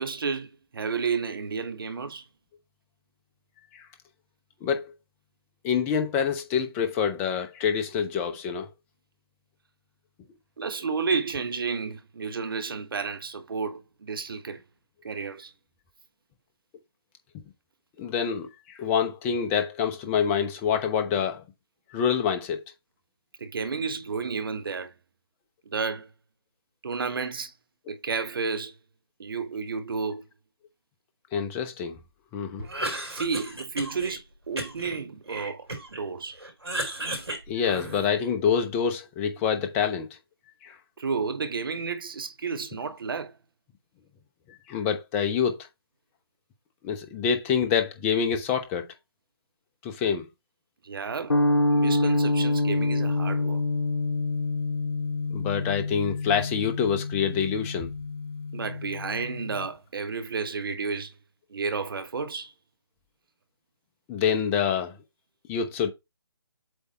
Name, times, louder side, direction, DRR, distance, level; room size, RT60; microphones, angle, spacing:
voice 1, 0.0-2.2 10.6-14.6 15.0-15.5 23.4-24.9 25.6-26.1 26.8-27.5 27.9-28.8 29.2-30.2 33.1-36.4 41.0-43.3 50.8-51.4 51.7-53.6 58.5-61.1 61.5-62.5, right 5 dB, 60° right, 1.2 m, -31 dB
voice 2, 4.6-4.9 5.6-8.7 18.0-21.4 21.9-22.6 31.3-32.0 32.3-32.7 37.5-40.1 40.6-40.8 44.5-45.7 46.8-48.9 49.8-50.3 55.3-57.9 64.1-64.9 65.5-65.9, left 7 dB, 15° left, 0.9 m, -26 dB
Cough, 32.6-34.2 34.6-36.0 36.4-38.3, right 1 dB, 90° right, 3.8 m, -34 dB
sound 1, 51.3-59.7, left 2 dB, 75° left, 3.0 m, -27 dB
8.0 x 3.5 x 4.2 m
figure-of-eight pair, 150°, 13 cm